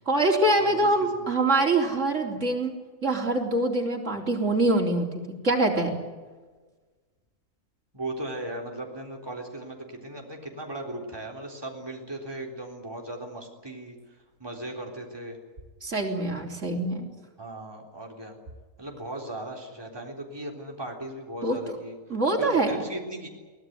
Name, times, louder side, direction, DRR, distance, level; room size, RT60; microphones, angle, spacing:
voice 1, 0.0-2.7 3.0-5.9 15.8-17.1 21.4-21.6 22.1-22.7, right 2 dB, 55° right, 1 dB, 4.3 m, -24 dB
voice 2, 0.6-0.9 1.1-1.3 7.9-15.4 17.4-18.4 18.8-22.0 22.4-23.3, right 1 dB, 15° right, 1 dB, 3.7 m, -37 dB
23.5 x 18.5 x 9.5 m, 1.3 s
omnidirectional pair, 1.5 m